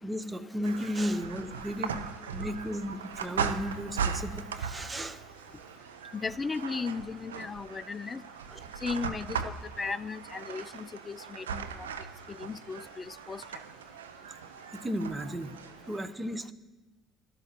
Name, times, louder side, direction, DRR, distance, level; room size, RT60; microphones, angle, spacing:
voice 1, 0.0-2.0 2.3-5.2 8.5-8.8 14.7-15.5 15.9-16.5, equal, 20° right, 0.9 m, -34 dB
sound 1, 0.6-16.0, right 6 dB, 80° right, 0.5 m, -38 dB
voice 2, 6.1-8.2 8.8-11.7 12.3-13.4, left 4 dB, 25° left, 0.3 m, -36 dB
12.5 x 12.0 x 3.0 m
figure-of-eight pair, 55°, 0 cm